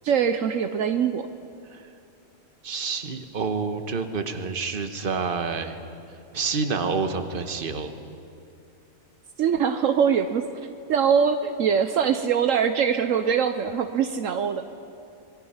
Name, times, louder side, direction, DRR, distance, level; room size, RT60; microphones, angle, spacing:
voice 1, 0.0-1.3 9.4-14.7, right 7 dB, 70° right, 8 dB, 1.1 m, -23 dB
voice 2, 2.6-5.8 6.3-7.9, right 4 dB, 40° right, 7 dB, 1.3 m, -28 dB
26.0 x 22.0 x 5.7 m, 2.6 s
omnidirectional pair, 1.4 m